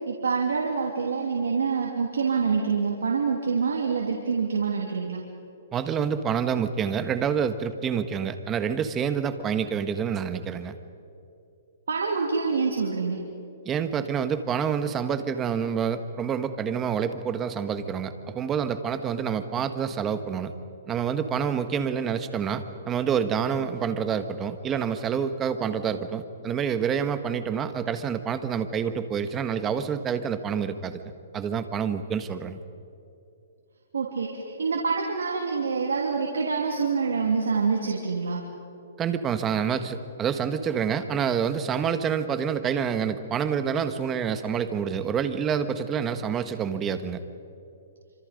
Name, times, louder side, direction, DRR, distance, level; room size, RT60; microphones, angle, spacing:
voice 1, 0.1-5.2 11.9-13.2 33.9-38.4, right 5 dB, 90° right, -1 dB, 3.0 m, -26 dB
voice 2, 5.7-10.7 13.6-20.5 20.9-31.0 31.3-32.6 39.0-47.2, right 7 dB, 20° right, 10 dB, 1.5 m, -27 dB
27.5 x 26.0 x 5.3 m, 2.7 s
hypercardioid pair, 145°, 0 cm